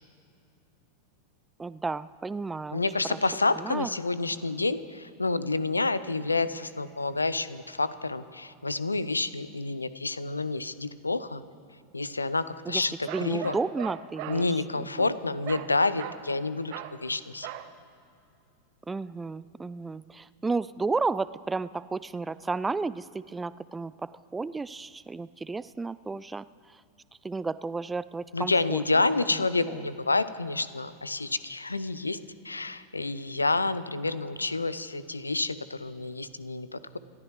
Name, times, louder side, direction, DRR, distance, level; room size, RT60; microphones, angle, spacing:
voice 1, 1.6-2.8 3.1-3.2 3.6-3.9 12.7-12.8 13.1-15.1 18.9-26.5 26.7-26.8 27.2-28.8 29.3-29.8, right 4 dB, 15° right, 18 dB, 0.3 m, -33 dB
voice 2, 2.7-11.4 11.9-13.6 14.3-17.5 28.3-32.2 32.4-37.0, left 3 dB, 85° left, 15 dB, 0.6 m, -29 dB
Bark, 13.1-14.4 15.5-15.7 16.0-16.3 16.7-17.0 17.4-17.7, right 12 dB, 50° right, 0.8 m, -38 dB
28.0 x 13.5 x 3.2 m, 2.5 s
figure-of-eight pair, 90°, 0 cm